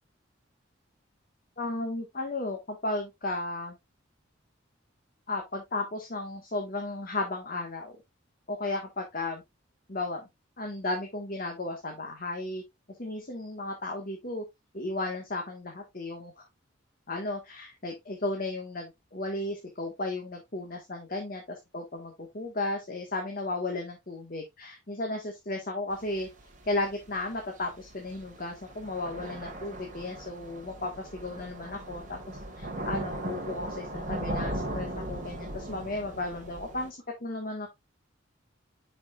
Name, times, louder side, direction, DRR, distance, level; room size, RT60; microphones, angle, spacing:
voice 1, 1.6-3.8 5.3-8.0 8.5-9.4 9.9-10.3 10.6-12.6 13.0-14.4 14.7-16.4 17.1-26.3 26.7-36.9 37.2-37.7, left 2 dB, 45° left, 1 dB, 1.6 m, -34 dB
Thunder / Rain, 25.9-36.9, right 1 dB, 40° right, 1.9 m, -38 dB
10.0 x 5.2 x 2.4 m, 0.20 s
head